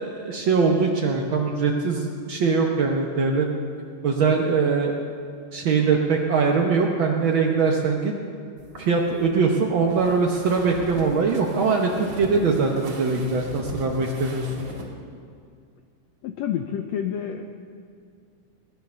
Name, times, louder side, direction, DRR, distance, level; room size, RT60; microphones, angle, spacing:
voice 1, 0.0-3.5 4.0-5.0 5.5-8.1 8.8-14.5, right 4 dB, 85° right, 1 dB, 1.1 m, -22 dB
sound 1, 8.6-14.9, right 1 dB, 35° right, 2.6 m, -39 dB
voice 2, 16.2-17.4, left 9 dB, 80° left, 6 dB, 1.5 m, -28 dB
19.5 x 10.5 x 6.8 m, 2.3 s
omnidirectional pair, 3.8 m